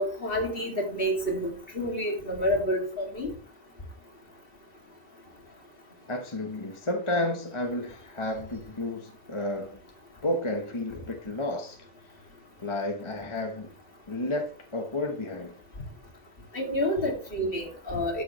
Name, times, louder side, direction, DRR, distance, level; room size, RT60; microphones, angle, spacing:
voice 1, 0.0-3.3 16.5-18.2, equal, 55° left, 2.7 m, -29 dB
voice 2, 6.1-9.8 10.2-11.8 12.6-13.7 14.1-15.5, left 1 dB, 25° left, 1.1 m, -31 dB
12.5 x 6.6 x 3.1 m
omnidirectional pair, 1.2 m